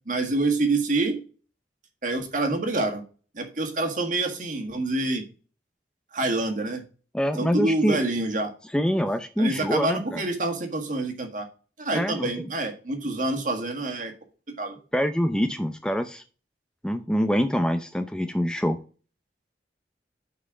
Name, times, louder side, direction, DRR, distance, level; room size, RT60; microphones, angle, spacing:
voice 1, 0.0-1.2 2.0-3.0 3.3-5.2 6.1-6.8 7.4-8.5 9.4-11.5 11.8-14.1 14.6-14.8, right 2 dB, 45° right, 5 dB, 1.7 m, -27 dB
voice 2, 7.1-8.0 8.7-10.2 11.9-12.5 14.9-16.2 16.8-18.8, equal, 5° left, 8 dB, 0.5 m, -25 dB
6.1 x 5.5 x 6.1 m, 0.37 s
head